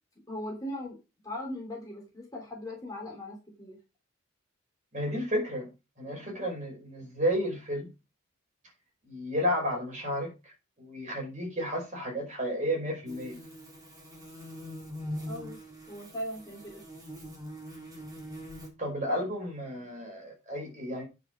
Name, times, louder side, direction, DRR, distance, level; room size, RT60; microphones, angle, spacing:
voice 1, 0.3-1.0 1.2-3.8 15.3-15.6 15.9-16.8, left 1 dB, 15° left, 3.3 m, -39 dB
voice 2, 4.9-5.7 6.0-7.9 9.0-10.5 10.8-13.4 18.8-21.0, equal, 35° right, 5.5 m, -32 dB
sound 1, 13.1-18.7, equal, 15° right, 3.4 m, -42 dB
9.3 x 7.0 x 5.2 m
head